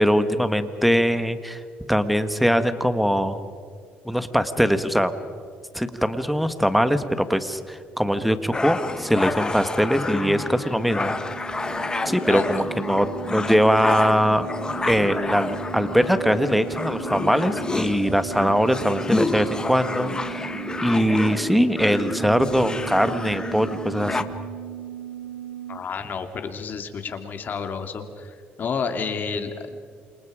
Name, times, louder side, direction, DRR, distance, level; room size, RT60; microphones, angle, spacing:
voice 1, 0.0-1.6 1.9-3.4 4.0-5.1 5.7-11.1 12.0-14.5 14.8-20.5 20.8-24.3, equal, ahead, 10 dB, 1.5 m, -22 dB
sound 1, 8.5-24.2, left 3 dB, 20° left, 1.3 m, -29 dB
sound 2, 9.6-25.8, right 11 dB, 85° right, 7.6 m, -38 dB
voice 2, 25.7-29.8, left 5 dB, 45° left, 7 dB, 2.5 m, -30 dB
28.5 x 27.5 x 5.0 m, 2.1 s
cardioid pair, 105°, 4 cm